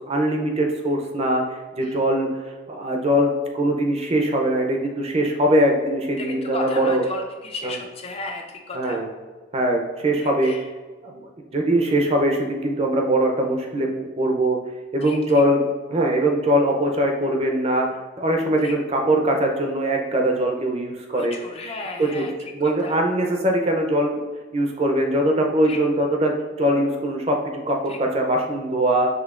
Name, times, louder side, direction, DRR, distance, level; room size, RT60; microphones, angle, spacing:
voice 1, 0.1-1.4 1.8-2.3 2.7-7.0 7.6-7.8 8.7-9.1 9.5-10.5 11.0-11.2 11.5-13.9 14.2-14.6 14.9-15.6 15.9-17.9 18.2-21.4 22.0-22.3 22.5-24.2 24.5-27.4 27.7-29.1, right 1 dB, 30° right, 2 dB, 0.5 m, -21 dB
voice 2, 6.2-9.0 10.2-10.7 15.0-15.4 18.6-18.7 21.1-22.3 22.6-23.0 25.6-25.8 27.9-28.0, left 2 dB, 30° left, 2 dB, 0.4 m, -34 dB
5.0 x 3.3 x 2.4 m, 1.4 s
head